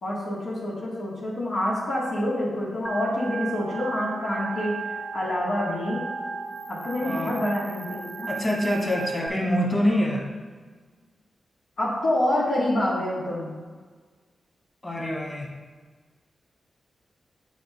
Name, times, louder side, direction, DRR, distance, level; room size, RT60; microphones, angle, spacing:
voice 1, 0.0-6.0 6.7-8.3 11.8-13.5, left 1 dB, 85° left, -7 dB, 1.6 m, -27 dB
Organ, 2.9-9.3, right 4 dB, 30° right, 0.3 m, -35 dB
voice 2, 7.0-7.3 8.3-10.2 14.8-15.5, equal, 25° left, -2 dB, 1.6 m, -25 dB
7.0 x 2.5 x 5.4 m, 1.5 s
cardioid pair, 60°, 0 cm